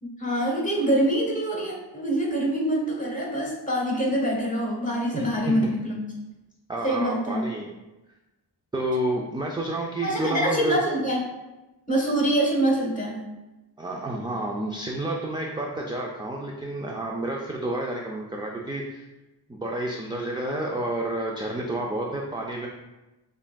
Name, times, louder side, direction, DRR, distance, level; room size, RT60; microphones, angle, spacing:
voice 1, 0.0-6.0 6.8-7.5 10.0-11.2 11.9-13.2, right 1 dB, 15° left, -2 dB, 1.2 m, -25 dB
voice 2, 5.1-5.7 6.7-7.7 8.7-10.8 13.8-19.0 19.5-22.7, right 1 dB, 10° right, -1 dB, 0.3 m, -30 dB
5.4 x 2.5 x 2.2 m, 1.0 s
wide cardioid pair, 60°, 45 cm